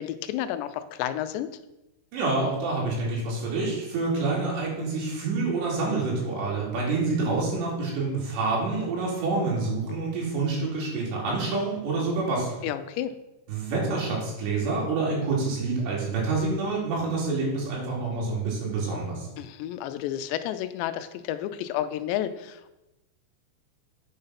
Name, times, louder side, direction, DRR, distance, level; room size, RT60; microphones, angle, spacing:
voice 1, 0.0-1.5 12.6-13.1 19.4-22.7, left 11 dB, 90° left, 11 dB, 2.8 m, -31 dB
voice 2, 2.1-12.7 13.5-19.3, right 3 dB, 85° right, -4 dB, 4.7 m, -27 dB
8.8 x 5.4 x 5.7 m, 0.95 s
omnidirectional pair, 4.9 m